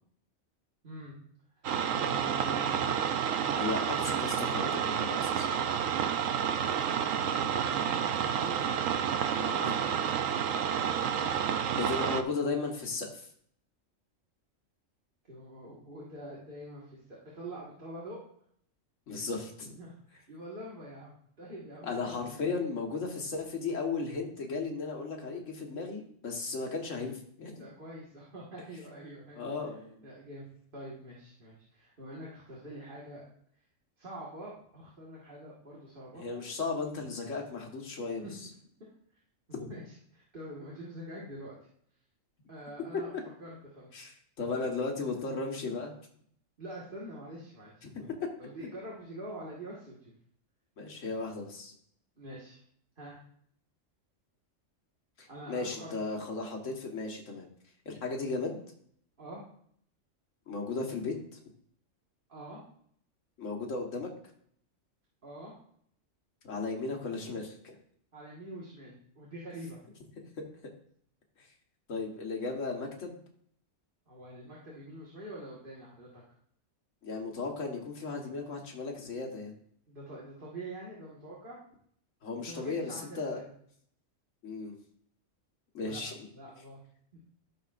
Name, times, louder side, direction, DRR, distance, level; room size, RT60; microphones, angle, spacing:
voice 1, 0.8-1.2 1.9-3.0 3.4-3.7 7.1-8.6 9.6-9.8 10.3-12.2 15.3-18.2 19.8-22.2 27.6-29.5 30.0-30.5 30.7-33.3 34.0-36.5 37.9-38.3 39.5-41.6 42.5-44.1 46.6-47.7 48.4-50.1 52.2-52.6 53.0-53.2 55.3-55.9 59.2-59.4 62.3-62.6 65.2-65.5 68.1-69.8 74.1-76.2 79.9-81.6 82.5-83.5 85.9-86.0 86.3-86.8, right 1 dB, 45° right, -6 dB, 1.9 m, -45 dB
sound 1, 1.6-12.2, right 8 dB, 85° right, 1.0 m, -30 dB
voice 2, 3.6-5.5 9.4-9.7 11.8-13.3 19.1-19.8 21.8-27.7 29.4-30.0 36.1-38.5 39.5-39.7 43.9-45.9 47.8-48.2 50.8-51.7 55.2-57.5 57.9-58.6 60.5-61.4 63.4-64.1 66.4-67.7 70.2-70.3 71.9-73.2 77.0-79.5 82.2-83.5 84.4-84.8 85.7-86.3, left 3 dB, 70° left, 1 dB, 1.8 m, -35 dB
14.0 x 6.9 x 2.5 m, 0.65 s
omnidirectional pair, 1.3 m